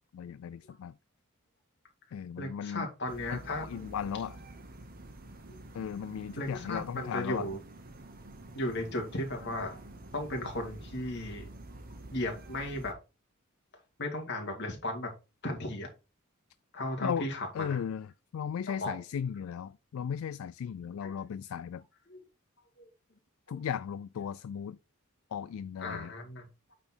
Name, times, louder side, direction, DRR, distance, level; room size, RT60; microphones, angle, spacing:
voice 1, 0.1-0.9 2.1-2.9 3.3-4.4 5.7-7.5 17.0-17.3 17.5-18.1 18.3-21.8 23.5-24.8 25.3-26.1, left 8 dB, 70° left, 0.3 m, -36 dB
voice 2, 2.4-3.9 5.5-5.6 6.4-7.6 8.5-9.8 10.1-11.5 12.1-12.9 14.0-15.1 15.4-15.9 16.7-17.8 18.8-19.0 21.0-21.2 22.1-22.2 22.8-22.9 23.5-23.6 25.8-26.5, left 1 dB, 55° left, 2.4 m, -35 dB
sound 1, 3.1-12.9, right 1 dB, 45° right, 1.1 m, -48 dB
8.7 x 4.1 x 4.4 m
head